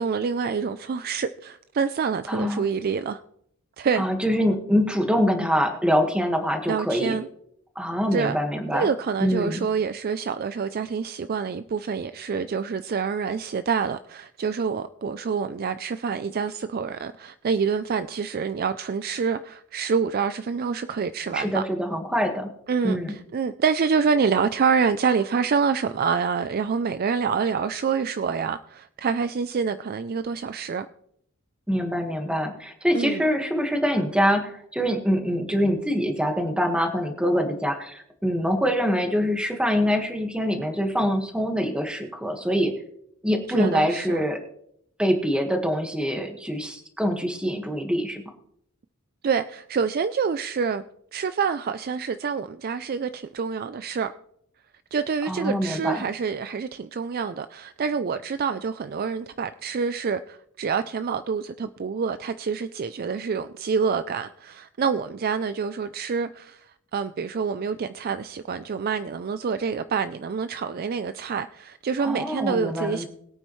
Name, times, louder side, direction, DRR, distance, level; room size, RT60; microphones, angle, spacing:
voice 1, 0.0-3.2 3.8-4.1 6.7-7.3 8.1-8.4 8.7-21.6 22.7-30.9 32.9-33.3 43.5-44.2 49.2-50.8 51.1-54.1 54.9-73.1, right 6 dB, 40° right, 0.4 m, -27 dB
voice 2, 2.3-2.6 4.0-7.2 7.7-8.9 9.2-9.6 21.3-22.5 22.8-23.2 31.7-42.7 43.2-44.4 45.0-48.2 55.3-56.0 72.0-73.1, equal, 5° right, 1.5 m, -24 dB
21.5 x 8.8 x 3.1 m
head